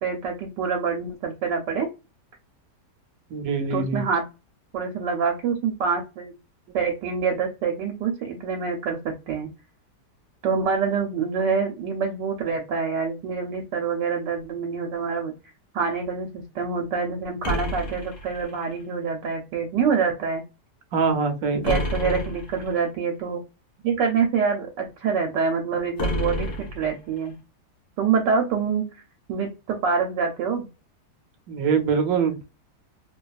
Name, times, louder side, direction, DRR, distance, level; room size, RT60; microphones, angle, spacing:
voice 1, 0.0-1.9 3.7-4.2 4.7-6.4 6.7-9.5 10.4-15.3 15.7-20.4 21.6-23.4 23.8-27.3 28.0-28.8 29.3-30.7, right 5 dB, 85° right, 2 dB, 1.3 m, -26 dB
voice 2, 3.3-4.0 20.9-21.8 31.5-32.4, right 5 dB, 65° right, 6 dB, 1.0 m, -24 dB
sound 1, 17.4-18.8 21.6-22.8 26.0-27.3, left 1 dB, 40° left, 1.2 m, -29 dB
2.9 x 2.2 x 2.3 m, 0.29 s
omnidirectional pair, 1.8 m